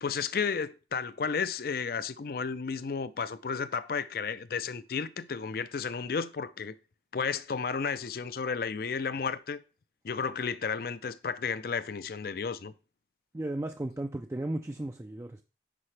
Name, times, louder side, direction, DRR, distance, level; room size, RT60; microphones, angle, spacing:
voice 1, 0.0-6.8 7.1-9.6 10.0-12.7, left 5 dB, 55° left, 0.5 m, -33 dB
voice 2, 13.3-15.4, right 1 dB, 15° right, 0.3 m, -35 dB
10.0 x 4.7 x 3.3 m
head